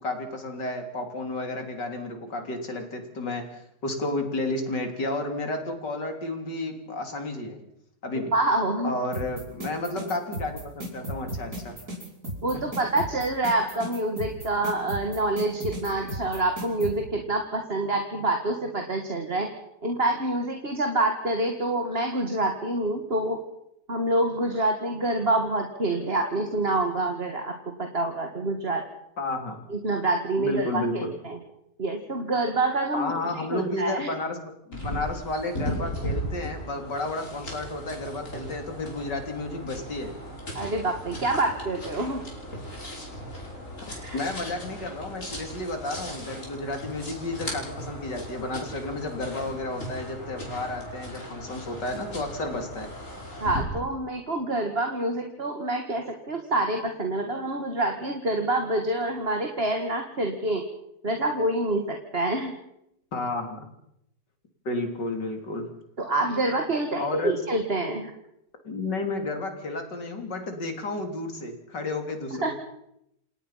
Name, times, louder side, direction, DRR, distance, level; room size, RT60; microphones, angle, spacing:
voice 1, 0.0-7.6 8.0-8.3 8.8-11.8 29.2-29.6 30.4-31.1 32.9-34.4 34.7-40.1 44.1-52.9 63.1-63.7 64.7-65.7 67.0-67.3 68.6-72.5, left 2 dB, 85° left, 5 dB, 4.0 m, -32 dB
voice 2, 8.3-8.9 12.4-19.5 19.8-23.4 23.9-27.5 27.8-28.8 29.7-31.4 31.8-33.1 33.5-34.1 40.5-42.2 44.0-44.2 53.4-60.6 61.0-62.5 66.0-68.1 72.3-72.5, right 2 dB, 35° right, 4 dB, 2.2 m, -27 dB
sound 1, 9.1-16.9, right 1 dB, 60° right, 6.1 m, -34 dB
sound 2, 34.7-53.6, equal, 45° left, 6.0 m, -37 dB
29.0 x 18.5 x 5.8 m, 0.79 s
omnidirectional pair, 1.8 m